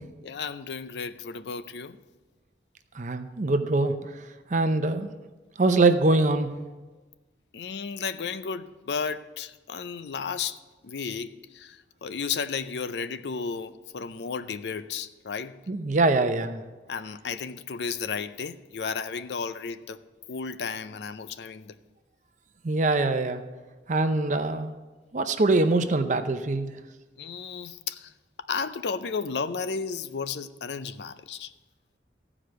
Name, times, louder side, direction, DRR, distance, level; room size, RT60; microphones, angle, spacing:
voice 1, 0.2-2.0 7.5-15.6 16.9-20.0 20.3-21.7 27.2-28.1 28.4-31.5, left 5 dB, 70° left, 0.5 m, -33 dB
voice 2, 2.9-5.1 5.6-6.5 15.7-16.6 22.6-23.4 23.9-24.7 25.1-26.7, right 2 dB, 45° right, 0.6 m, -23 dB
14.5 x 4.9 x 7.8 m
head